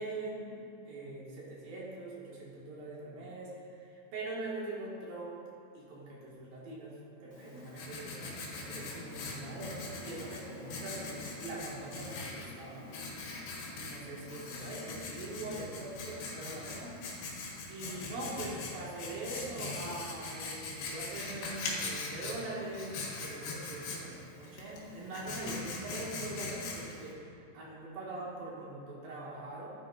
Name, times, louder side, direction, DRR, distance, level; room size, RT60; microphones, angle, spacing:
voice 1, 0.0-5.4 5.7-12.8 13.7-17.0 17.7-29.7, right 2 dB, 60° right, -6 dB, 3.0 m, -42 dB
Writing, 7.3-27.1, left 3 dB, 90° left, 4.1 m, -41 dB
13.0 x 10.0 x 2.5 m, 2.5 s
omnidirectional pair, 5.4 m